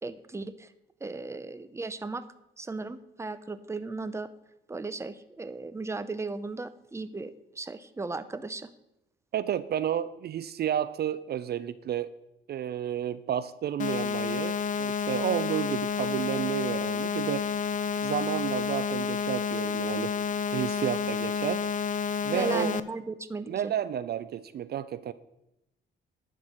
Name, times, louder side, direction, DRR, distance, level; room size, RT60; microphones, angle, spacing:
voice 1, 0.0-0.7 1.0-2.3 2.6-4.3 4.7-8.7 22.3-23.7, right 3 dB, 15° right, 13 dB, 0.7 m, -36 dB
voice 2, 9.3-12.1 12.5-17.5 18.0-20.1 20.5-21.7 22.2-22.7 23.5-25.1, right 10 dB, 55° right, 15 dB, 0.5 m, -31 dB
sound 1, 13.8-22.8, left 6 dB, 40° left, 0.6 m, -30 dB
11.0 x 4.6 x 8.0 m, 0.89 s
cardioid pair, 90°, 20 cm